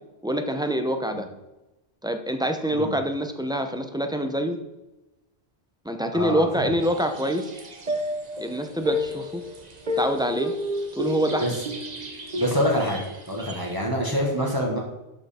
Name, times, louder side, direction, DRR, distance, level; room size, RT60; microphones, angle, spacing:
voice 1, 0.2-1.3 2.0-4.6 5.8-7.5 8.4-9.4 10.0-10.5 11.0-11.6, equal, 5° right, 6 dB, 0.7 m, -26 dB
voice 2, 6.1-6.7 11.4-11.5 12.4-13.0 13.3-14.8, equal, 20° right, -2 dB, 1.7 m, -25 dB
sound 1, 6.8-13.7, left 1 dB, 40° right, 1.1 m, -32 dB
12.0 x 5.4 x 4.4 m, 1.0 s
omnidirectional pair, 1.1 m